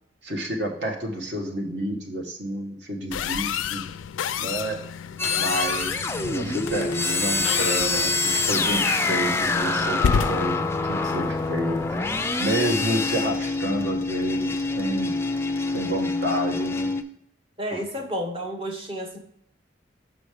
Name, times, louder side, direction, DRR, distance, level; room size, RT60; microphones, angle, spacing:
voice 1, 0.2-3.8 4.4-4.8 5.3-11.8 12.4-15.1 15.6-16.9, right 1 dB, 65° right, 3 dB, 1.3 m, -29 dB
sound 1, 3.1-12.2, left 7 dB, 90° left, 0.3 m, -31 dB
sound 2, 5.2-17.0, left 3 dB, 15° left, 0.4 m, -26 dB
voice 2, 17.6-19.2, equal, 30° right, 2 dB, 1.0 m, -31 dB
6.2 x 5.1 x 4.8 m, 0.73 s
head